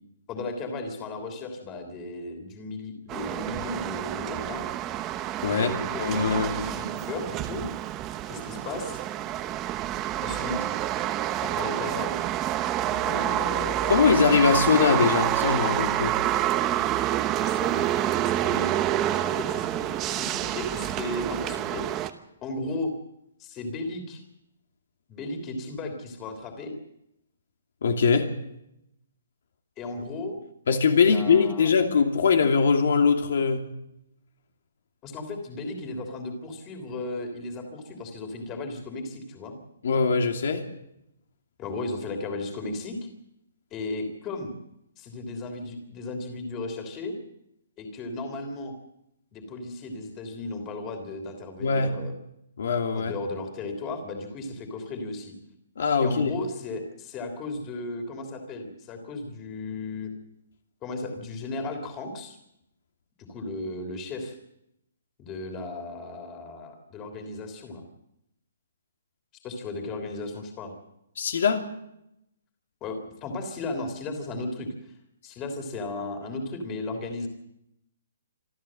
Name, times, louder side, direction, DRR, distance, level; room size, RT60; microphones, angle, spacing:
voice 1, 0.3-4.6 5.5-7.6 8.2-9.0 10.2-10.7 11.4-12.1 12.8-14.1 17.4-18.7 19.1-22.1 22.4-22.9 23.4-24.2 25.1-26.7 29.8-30.4 31.0-31.7 35.0-39.6 41.6-43.0 43.7-44.5 45.0-47.1 47.8-48.7 49.3-52.1 52.9-55.3 56.0-60.1 60.8-62.4 63.3-64.3 65.2-67.8 69.4-70.7 72.8-74.9 75.2-77.3, left 2 dB, 20° left, 5 dB, 3.3 m, -35 dB
sound 1, 3.1-22.1, right 13 dB, 15° right, 1.0 m, -28 dB
voice 2, 5.4-5.7 6.0-6.5 13.9-16.2 27.8-28.3 30.7-33.7 39.8-40.7 51.6-52.0 52.6-53.2 55.8-56.3 71.2-71.6, left 5 dB, 65° left, 4 dB, 2.7 m, -22 dB
26.5 x 13.0 x 7.6 m, 0.82 s
hypercardioid pair, 165°, 0 cm